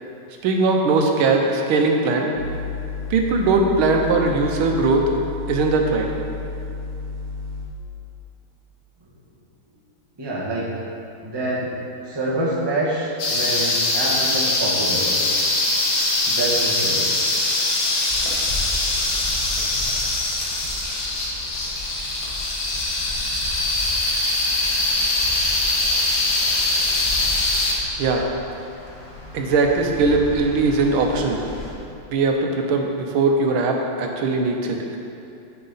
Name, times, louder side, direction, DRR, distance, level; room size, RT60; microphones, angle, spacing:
voice 1, 0.4-2.3 3.1-5.1 5.5-6.1 28.0-28.3 29.3-31.4 32.1-35.0, right 3 dB, 85° right, 2 dB, 1.6 m, -20 dB
sound 1, 2.3-7.7, left 4 dB, 60° left, 2.7 m, -32 dB
voice 2, 10.2-10.7 11.2-11.7 12.0-15.1 16.2-17.1, right 2 dB, 15° right, -6 dB, 1.0 m, -26 dB
sound 2, 13.2-27.7, left 2 dB, 75° left, 1.8 m, -22 dB
sound 3, 18.1-31.7, left 1 dB, 20° left, 0.9 m, -36 dB
7.5 x 6.8 x 4.1 m, 2.7 s
omnidirectional pair, 2.2 m